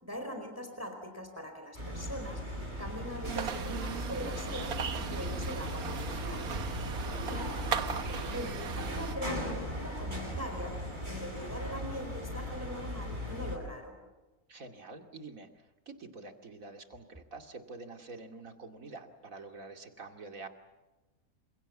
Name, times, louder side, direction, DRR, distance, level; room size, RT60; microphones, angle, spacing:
voice 1, 0.0-2.4 2.8-4.8 5.1-6.4 7.2-7.5 8.1-14.0, equal, 10° right, 5 dB, 4.5 m, -41 dB
sound 1, 1.7-13.6, left 1 dB, 30° right, 8.2 m, -38 dB
sound 2, 3.2-9.1, right 6 dB, 85° right, 1.7 m, -37 dB
voice 2, 6.9-7.2 11.2-11.4 14.5-20.5, right 3 dB, 70° right, 4 dB, 2.9 m, -47 dB
29.0 x 27.0 x 7.3 m, 1.1 s
omnidirectional pair, 1.5 m